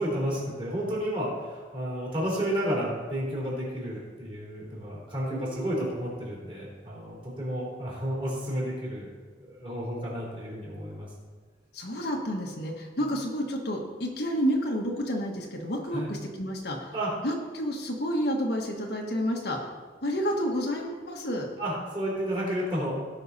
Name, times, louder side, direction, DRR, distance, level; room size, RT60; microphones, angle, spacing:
voice 1, 0.0-9.1 9.4-11.1 13.0-13.1 15.9-16.1 16.9-17.1 21.6-23.0, equal, 25° right, -5 dB, 3.7 m, -31 dB
voice 2, 5.3-5.8 11.7-16.9 17.2-19.6 20.0-21.5, equal, 60° left, 0 dB, 1.4 m, -30 dB
17.0 x 5.9 x 4.1 m, 1.5 s
head